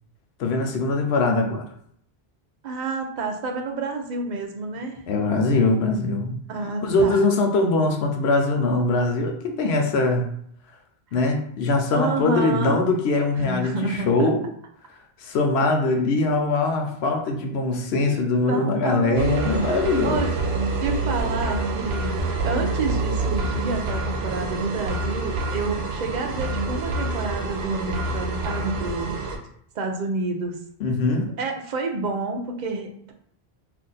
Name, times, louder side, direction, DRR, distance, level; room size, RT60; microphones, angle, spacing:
voice 1, 0.4-1.6 5.1-6.4 6.8-10.3 11.1-14.4 15.2-20.3 30.8-31.3, left 3 dB, 85° left, 3 dB, 0.9 m, -22 dB
voice 2, 2.6-4.9 6.5-7.2 11.9-12.9 13.4-14.3 18.5-19.4 20.0-20.3 20.8-29.1 29.7-30.5 31.4-33.1, right 3 dB, 55° right, 2 dB, 0.6 m, -29 dB
sound 1, 19.2-29.4, right 2 dB, 80° right, 0.8 m, -27 dB
2.5 x 2.4 x 3.9 m, 0.66 s
omnidirectional pair, 1.1 m